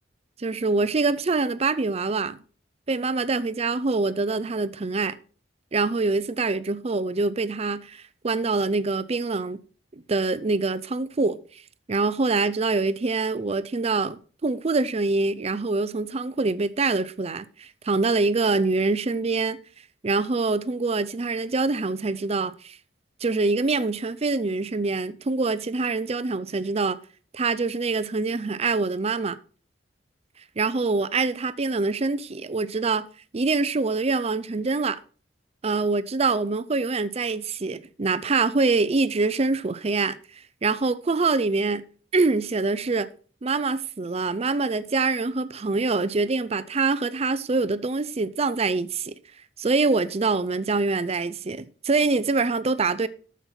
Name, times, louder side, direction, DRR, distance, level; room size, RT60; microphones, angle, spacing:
voice 1, 0.4-2.4 2.9-5.2 5.7-9.6 9.9-11.4 11.9-19.6 20.0-22.8 23.2-27.0 27.3-29.4 30.6-33.1 33.3-35.0 35.6-40.2 40.6-41.8 42.1-43.1 43.4-49.1 49.6-53.1, right 3 dB, 35° right, 0.5 m, -25 dB
9.5 x 7.2 x 4.4 m
head